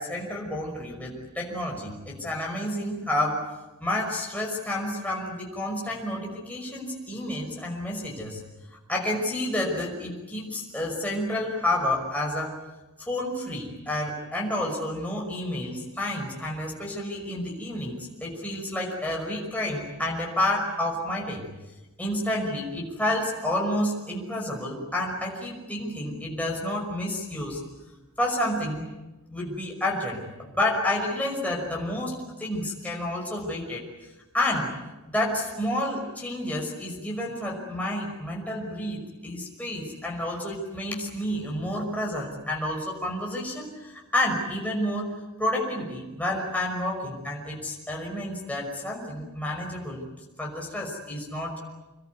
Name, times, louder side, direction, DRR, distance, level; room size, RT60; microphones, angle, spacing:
voice 1, 0.0-3.4 3.8-8.4 8.9-12.5 13.0-21.5 22.0-27.6 28.2-28.9 29.3-33.8 34.3-34.7 35.1-45.1 45.4-50.1 50.4-51.6, left 1 dB, 5° left, -2 dB, 5.7 m, -30 dB
27.0 x 21.5 x 9.6 m, 1.1 s
head